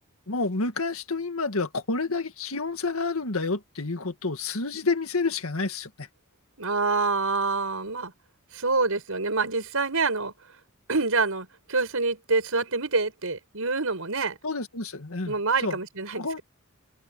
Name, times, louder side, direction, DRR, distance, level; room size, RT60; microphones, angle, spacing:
voice 1, 0.3-6.1 14.4-15.8 16.2-16.4, left 3 dB, 85° left, 1.9 m, -29 dB
voice 2, 6.6-8.1 8.5-10.3 10.9-14.4 15.2-16.4, right 3 dB, 80° right, 5.5 m, -26 dB
head